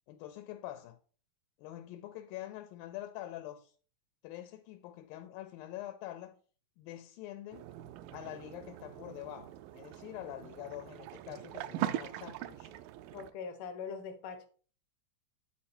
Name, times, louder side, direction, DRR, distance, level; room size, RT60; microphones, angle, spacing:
voice 1, 0.1-1.0 1.6-3.7 4.2-6.4 6.8-7.7 8.1-12.8, left 13 dB, 90° left, 2.4 m, -45 dB
sound 1, 7.5-13.3, right 13 dB, 85° right, 2.3 m, -41 dB
voice 2, 13.1-14.5, left 6 dB, 65° left, 1.2 m, -42 dB
10.0 x 4.4 x 4.2 m
omnidirectional pair, 4.0 m